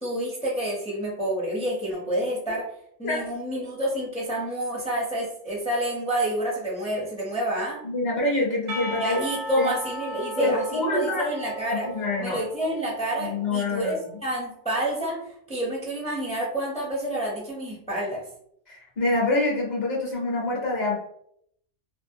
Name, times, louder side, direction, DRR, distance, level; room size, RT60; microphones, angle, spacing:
voice 1, 0.0-2.7 3.0-7.8 9.0-11.9 12.2-13.9 14.2-18.2, right 1 dB, 10° left, -5 dB, 0.4 m, -28 dB
voice 2, 7.8-9.2 9.6-9.8 10.4-11.3 11.9-12.4 13.2-14.0 18.7-20.9, left 2 dB, 45° left, -2 dB, 0.7 m, -26 dB
Percussion, 8.7-13.5, right 1 dB, 70° right, 0.8 m, -36 dB
2.6 x 2.0 x 2.6 m, 0.70 s
omnidirectional pair, 1.2 m